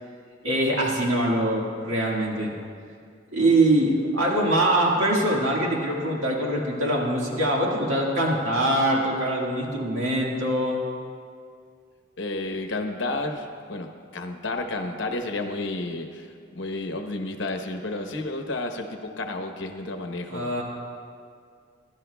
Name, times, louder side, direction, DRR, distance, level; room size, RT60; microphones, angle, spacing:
voice 1, 0.4-2.5 3.3-10.8 20.3-20.6, right 1 dB, 85° right, -3 dB, 1.8 m, -23 dB
voice 2, 12.2-20.5, left 2 dB, 65° left, 4 dB, 1.0 m, -31 dB
20.5 x 11.5 x 2.3 m, 2.2 s
head